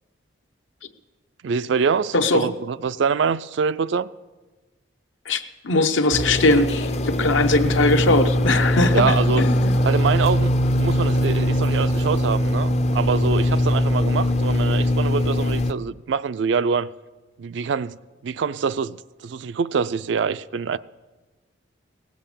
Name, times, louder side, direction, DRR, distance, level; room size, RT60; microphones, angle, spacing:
voice 1, 1.4-4.1 8.9-9.4 9.8-16.9 17.4-18.0 18.2-20.8, right 6 dB, 65° right, 0.4 m, -25 dB
voice 2, 2.1-2.5 5.3-9.7, left 2 dB, 75° left, 0.9 m, -20 dB
sound 1, 6.1-15.7, left 1 dB, 35° left, 0.5 m, -21 dB
18.0 x 7.8 x 7.1 m
head